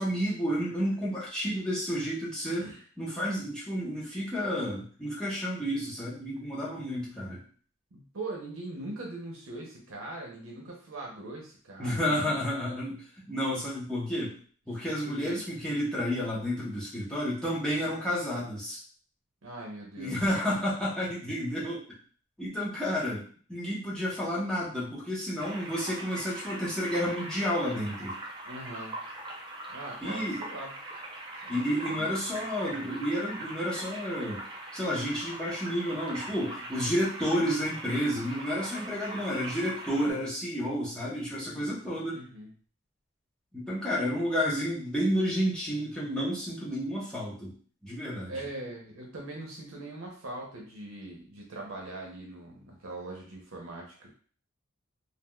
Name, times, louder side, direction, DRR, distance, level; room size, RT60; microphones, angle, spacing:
voice 1, 0.0-2.7 3.0-7.4 11.8-14.4 14.7-18.8 20.0-21.8 22.4-23.2 23.5-28.2 30.0-30.4 31.5-34.4 34.7-42.2 43.5-47.5 47.8-48.3, equal, 5° left, -8 dB, 0.9 m, -31 dB
voice 2, 7.9-12.4 15.0-15.4 19.4-20.2 28.5-28.9 29.7-30.7 31.4-31.6 32.0-32.1 32.3-32.4 42.1-42.5 48.3-54.1, right 2 dB, 80° right, -1 dB, 0.7 m, -41 dB
sound 1, 25.4-40.1, right 1 dB, 25° right, 0.5 m, -41 dB
3.4 x 2.4 x 2.2 m, 0.43 s
head